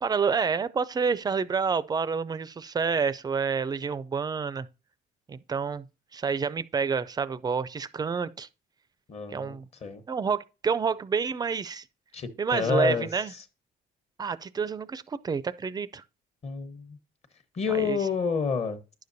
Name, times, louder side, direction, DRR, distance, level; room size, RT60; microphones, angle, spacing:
voice 1, 0.0-4.7 5.3-5.8 6.1-8.5 9.3-9.7 10.1-11.9 12.4-13.3 14.2-16.0 17.8-18.0, right 5 dB, 25° right, 0.4 m, -28 dB
voice 2, 9.1-10.0 12.1-13.1 16.4-17.0 17.5-18.8, left 5 dB, 40° left, 1.1 m, -29 dB
10.0 x 6.7 x 2.6 m
cardioid pair, 110°, 17 cm